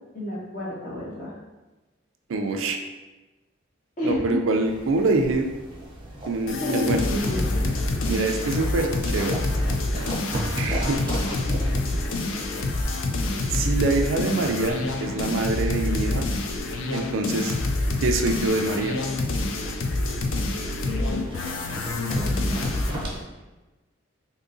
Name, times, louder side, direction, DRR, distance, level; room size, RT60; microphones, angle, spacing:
voice 1, 0.1-1.3 4.0-4.4 6.6-7.7 20.9-21.6 22.0-22.6, left 2 dB, 40° left, -6 dB, 1.0 m, -30 dB
voice 2, 2.3-2.8 4.0-5.5 6.3-7.0 8.1-9.4 10.5-11.0 13.5-16.3 16.9-17.5 18.0-19.0, right 3 dB, 80° right, 4 dB, 0.4 m, -25 dB
sound 1, 4.6-23.2, right 1 dB, 25° right, 0.5 m, -37 dB
sound 2, 6.5-23.0, left 2 dB, 75° left, 0.4 m, -27 dB
3.7 x 2.7 x 2.6 m, 1.1 s
head